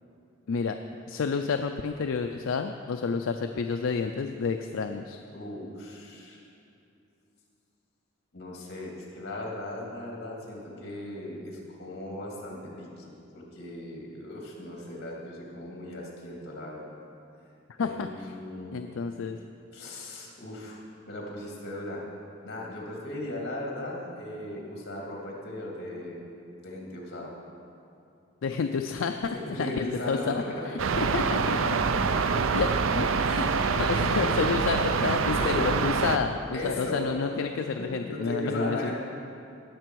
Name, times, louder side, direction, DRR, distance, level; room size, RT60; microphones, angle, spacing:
voice 1, 1.1-5.2 17.7-18.3 18.7-19.4 28.4-31.6 32.5-38.9, left 5 dB, 75° left, 6 dB, 0.4 m, -30 dB
voice 2, 5.3-6.4 8.3-16.9 17.8-18.9 19.7-20.8 21.1-22.0 22.4-26.2 26.6-27.3 29.3-30.7 31.7-32.4 33.2-34.4 35.0-35.8 36.5-37.4 37.7-39.0, left 1 dB, 55° left, -2 dB, 2.5 m, -37 dB
sound 1, 30.8-36.2, right 5 dB, 80° right, 0.5 m, -25 dB
18.0 x 6.8 x 4.6 m, 2.7 s
head